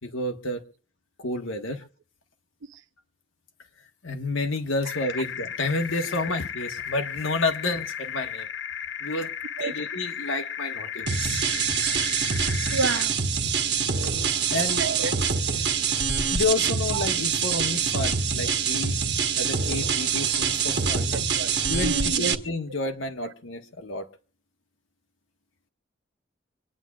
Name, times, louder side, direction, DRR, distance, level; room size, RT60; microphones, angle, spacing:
voice 1, 0.0-0.6 1.2-1.8 4.0-8.5 9.0-9.3 9.6-11.4 14.5-14.8 15.6-15.7 16.3-19.0 19.4-21.2 21.7-24.1, left 2 dB, 90° left, 1.4 m, -30 dB
sound 1, 4.8-13.1, left 8 dB, 65° left, 0.6 m, -35 dB
sound 2, 11.1-22.4, right 6 dB, 60° right, 1.2 m, -25 dB
voice 2, 12.7-13.2 14.6-15.3 16.9-17.0 20.2-20.3 21.1-21.6 21.8-22.3, right 4 dB, 80° right, 0.7 m, -30 dB
26.0 x 10.0 x 2.4 m
head